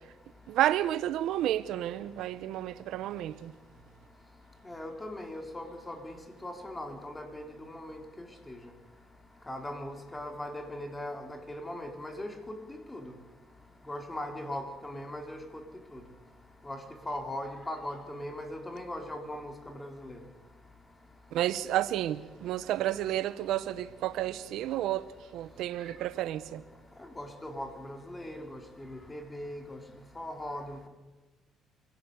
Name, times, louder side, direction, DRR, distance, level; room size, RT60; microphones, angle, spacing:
voice 1, 0.5-3.5 21.3-25.0 25.3-26.6, right 13 dB, 75° right, 0.9 m, -31 dB
voice 2, 4.6-6.2 6.4-8.0 8.5-8.6 9.5-12.5 12.9-13.1 13.9-15.4 15.9-16.0 16.6-16.8 17.1-20.2 27.2-29.8 30.2-30.9, left 1 dB, 15° left, 4.3 m, -39 dB
25.5 x 17.0 x 8.3 m
cardioid pair, 90°, 0 cm